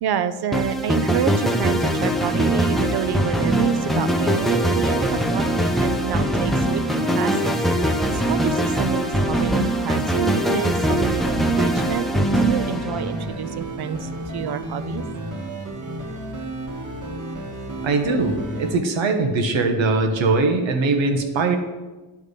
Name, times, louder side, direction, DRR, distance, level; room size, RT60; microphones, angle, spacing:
voice 1, 0.0-6.8 7.2-12.1 12.3-15.0, right 8 dB, 60° right, 13 dB, 0.6 m, -28 dB
sound 1, 0.5-13.4, right 1 dB, ahead, 0.6 m, -22 dB
sound 2, 2.2-18.7, right 1 dB, 40° right, 1.6 m, -32 dB
voice 2, 17.8-21.6, right 3 dB, 85° right, 6 dB, 1.2 m, -21 dB
10.0 x 3.6 x 6.5 m, 1.2 s
cardioid pair, 120°, 45 cm